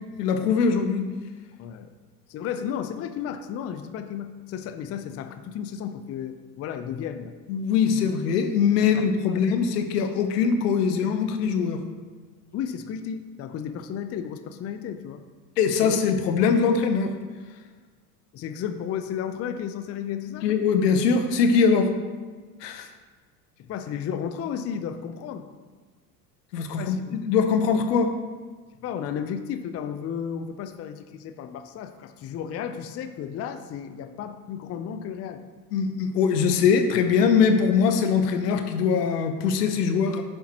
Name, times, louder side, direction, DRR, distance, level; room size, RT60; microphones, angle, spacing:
voice 1, 0.2-1.1 7.5-11.8 15.6-17.1 20.4-21.9 22.6-22.9 26.5-28.1 35.7-40.2, left 6 dB, 70° left, 7 dB, 1.0 m, -22 dB
voice 2, 1.6-1.9 2.3-7.3 8.9-9.4 12.5-15.2 15.8-16.0 18.3-20.5 23.6-25.5 26.7-27.2 28.8-35.4, left 8 dB, 30° left, 9 dB, 0.6 m, -33 dB
10.5 x 7.8 x 3.0 m, 1.4 s
hypercardioid pair, 75°, 50 cm